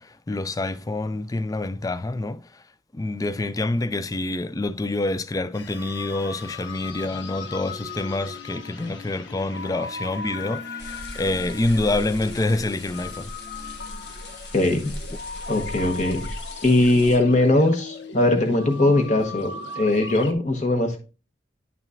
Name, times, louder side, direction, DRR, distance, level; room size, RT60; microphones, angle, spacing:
voice 1, 0.0-2.6 2.9-13.3, left 2 dB, 20° left, 0.4 m, -27 dB
sound 1, 5.5-20.3, left 4 dB, 85° left, 0.9 m, -37 dB
sound 2, 10.8-17.2, left 1 dB, 70° left, 1.8 m, -38 dB
voice 2, 14.5-14.9 15.5-21.0, left 2 dB, 40° left, 1.0 m, -20 dB
9.3 x 6.0 x 2.5 m
head